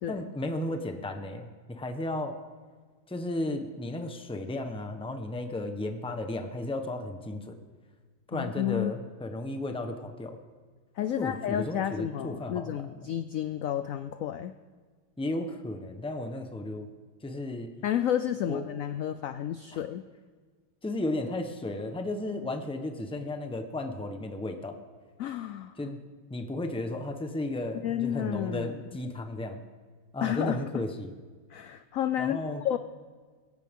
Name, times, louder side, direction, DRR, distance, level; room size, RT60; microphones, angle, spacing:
voice 1, 0.1-2.4 3.1-7.6 8.3-10.4 11.2-12.9 15.2-16.9 17.2-17.7 18.5-18.6 19.7-19.8 20.8-24.8 25.8-26.0 26.3-29.6 30.1-31.1 32.2-32.6, left 1 dB, 5° left, 5 dB, 0.7 m, -34 dB
voice 2, 8.3-8.9 11.0-14.5 17.8-20.0 25.2-25.7 27.8-28.8 30.2-30.8 31.5-32.4 32.6-32.8, left 11 dB, 80° left, 10 dB, 0.7 m, -31 dB
21.5 x 17.0 x 3.7 m, 1.5 s
omnidirectional pair, 2.0 m